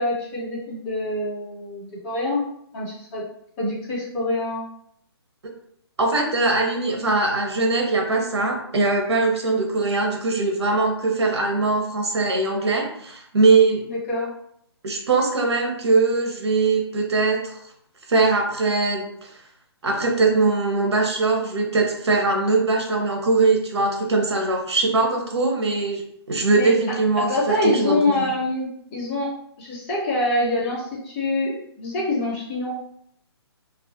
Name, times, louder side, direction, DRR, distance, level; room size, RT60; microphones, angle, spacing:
voice 1, 0.0-2.4 2.7-3.2 3.6-4.6 13.8-14.3 26.6-26.7 27.2-29.3 29.6-32.7, left 2 dB, 30° left, -6 dB, 1.0 m, -25 dB
voice 2, 6.0-13.8 14.8-17.4 18.1-19.1 19.8-26.0 26.3-28.3, right 3 dB, 85° right, 2 dB, 0.7 m, -21 dB
2.3 x 2.3 x 2.7 m, 0.69 s
hypercardioid pair, 150°, 14 cm